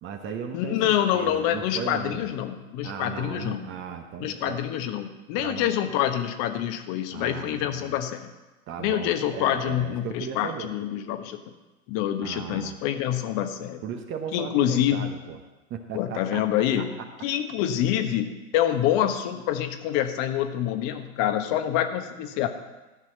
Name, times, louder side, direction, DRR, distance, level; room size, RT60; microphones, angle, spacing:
voice 1, 0.0-2.3 2.8-4.6 5.4-5.7 7.1-8.0 8.7-10.7 12.2-12.7 13.8-15.4 15.7-16.4 16.8-17.1, right 7 dB, 25° right, 5 dB, 1.1 m, -36 dB
voice 2, 0.5-3.7 4.2-8.3 8.8-11.4 11.9-13.8 14.3-15.1 15.9-16.9 17.2-22.5, left 11 dB, 40° left, 8 dB, 1.3 m, -26 dB
14.0 x 6.2 x 7.4 m, 1.1 s
hypercardioid pair, 110°, 44 cm